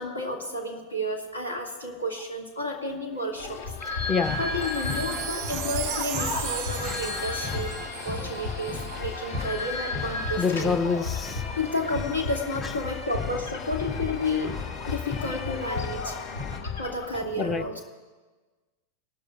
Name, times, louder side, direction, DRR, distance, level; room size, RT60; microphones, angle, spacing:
voice 1, 0.0-4.1 4.4-7.7 8.0-10.8 11.6-14.6 14.8-16.2 16.8-17.8, left 1 dB, 80° left, 1 dB, 2.0 m, -31 dB
sound 1, 3.4-17.1, left 4 dB, 60° left, 1.5 m, -34 dB
voice 2, 3.9-4.4 6.8-7.2 10.4-11.4 17.1-17.6, left 5 dB, 20° left, 9 dB, 0.7 m, -27 dB
sound 2, 4.2-16.6, left 4 dB, 40° left, 2.4 m, -37 dB
Wind chime, 4.6-9.0 9.5-9.6, right 17 dB, 40° right, 0.4 m, -36 dB
21.0 x 12.5 x 2.4 m, 1.3 s
figure-of-eight pair, 90°, 0 cm